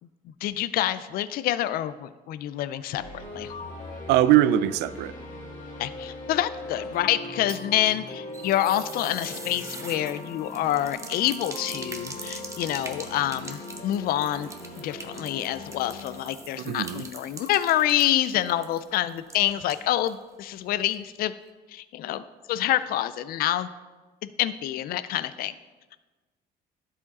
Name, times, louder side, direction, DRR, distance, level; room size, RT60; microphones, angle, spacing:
voice 1, 0.4-3.5 5.8-14.5 14.8-21.3 21.7-22.2 22.5-23.7 24.2-25.5, left 12 dB, 60° left, 13 dB, 0.4 m, -27 dB
sound 1, 3.0-17.8, left 2 dB, 45° left, 2.2 m, -40 dB
voice 2, 4.1-5.1 16.6-17.0, right 13 dB, 80° right, 16 dB, 0.4 m, -21 dB
sound 2, 7.2-20.2 20.5-20.6 20.9-21.0, right 3 dB, 15° right, 0.9 m, -43 dB
11.5 x 4.9 x 4.0 m, 1.2 s
cardioid pair, 110°, 17 cm